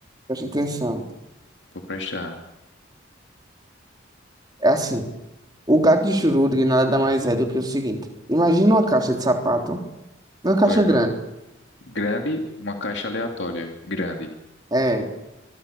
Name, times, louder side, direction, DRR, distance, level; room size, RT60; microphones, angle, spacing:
voice 1, 0.3-1.0 4.6-5.1 5.7-8.0 8.3-9.8 10.4-11.1 14.7-15.1, right 1 dB, 20° right, 4 dB, 3.4 m, -20 dB
voice 2, 1.9-2.4 10.7-11.0 11.8-14.3, left 2 dB, 65° left, 3 dB, 3.1 m, -29 dB
26.5 x 24.0 x 7.0 m, 0.94 s
head